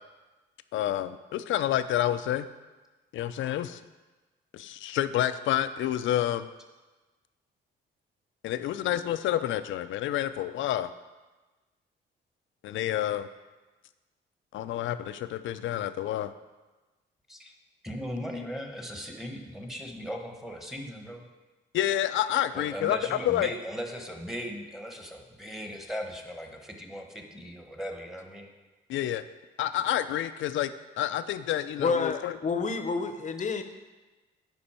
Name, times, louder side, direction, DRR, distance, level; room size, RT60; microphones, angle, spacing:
voice 1, 0.7-2.5 3.1-3.8 4.5-6.5 8.4-10.9 12.6-13.3 14.5-16.3 21.7-23.0 23.3-23.5 28.9-29.2 29.6-30.7 31.0-32.3, left 12 dB, 75° left, 12 dB, 0.5 m, -28 dB
voice 2, 17.8-21.3 22.5-28.5, equal, ahead, 2 dB, 1.2 m, -38 dB
voice 3, 31.8-33.6, left 4 dB, 40° left, 8 dB, 0.8 m, -29 dB
9.7 x 5.3 x 4.4 m, 1.2 s
cardioid pair, 90°, 20 cm